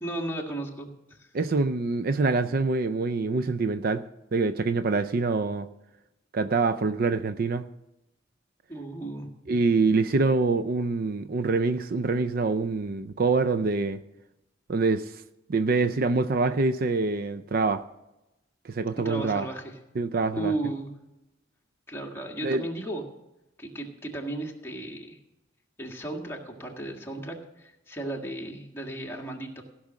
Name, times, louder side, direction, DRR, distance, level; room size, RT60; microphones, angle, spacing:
voice 1, 0.0-0.9 1.2-1.3 8.7-9.3 19.0-19.7 20.3-20.9 21.9-23.0 23.6-25.2 25.8-29.6, right 2 dB, 15° left, 1.7 m, -34 dB
voice 2, 1.3-4.0 4.3-5.7 6.3-7.7 9.5-14.0 14.7-15.1 15.5-17.8 18.6-19.5 20.0-20.5 22.4-22.6, right 3 dB, 50° right, 0.5 m, -25 dB
15.5 x 6.2 x 7.4 m
head